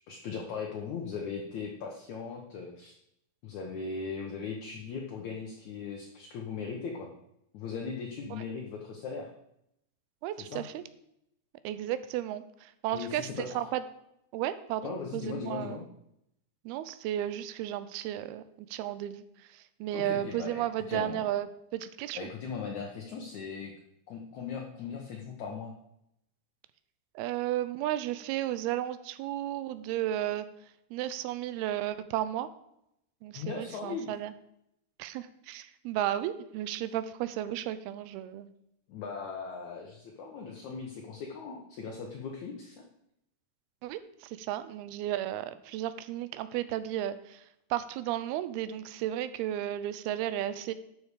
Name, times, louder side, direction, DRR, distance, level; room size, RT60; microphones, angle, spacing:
voice 1, 0.1-2.9 3.4-7.1 7.5-9.3 10.4-10.7 12.9-13.7 14.8-15.9 19.9-21.2 22.1-23.7 24.1-25.7 33.3-34.1 38.9-42.8, left 5 dB, 75° left, 1 dB, 1.7 m, -38 dB
voice 2, 10.2-10.8 11.6-13.8 14.3-15.9 16.7-19.2 19.8-22.3 27.2-30.5 30.9-32.5 33.2-34.3 35.0-38.5 43.8-47.4 47.7-50.7, right 12 dB, 80° right, 13 dB, 2.4 m, -33 dB
12.0 x 6.7 x 4.9 m, 0.79 s
omnidirectional pair, 4.8 m